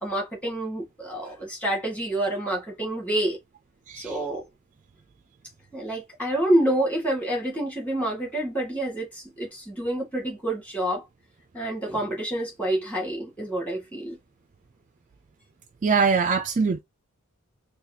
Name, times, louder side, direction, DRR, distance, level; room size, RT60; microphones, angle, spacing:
voice 1, 0.0-3.4 3.9-4.4 5.7-11.0 11.5-14.2, right 1 dB, 5° left, 1.5 m, -28 dB
voice 2, 15.8-16.8, right 5 dB, 35° right, 0.3 m, -22 dB
4.0 x 2.3 x 2.7 m
head